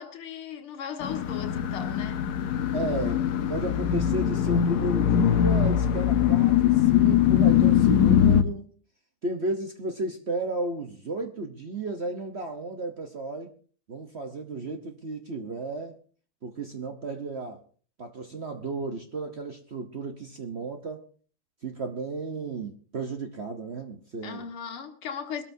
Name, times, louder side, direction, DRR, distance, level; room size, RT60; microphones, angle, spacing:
voice 1, 0.0-2.3 24.2-25.4, left 7 dB, 80° left, 2.5 m, -37 dB
sound 1, 1.0-8.4, left 9 dB, 65° left, 1.1 m, -22 dB
voice 2, 2.7-3.2 3.5-8.7 9.2-13.5 13.9-16.0 16.4-17.6 18.0-21.0 21.6-24.5, right 2 dB, 50° right, 0.8 m, -33 dB
22.5 x 13.0 x 2.7 m
omnidirectional pair, 2.4 m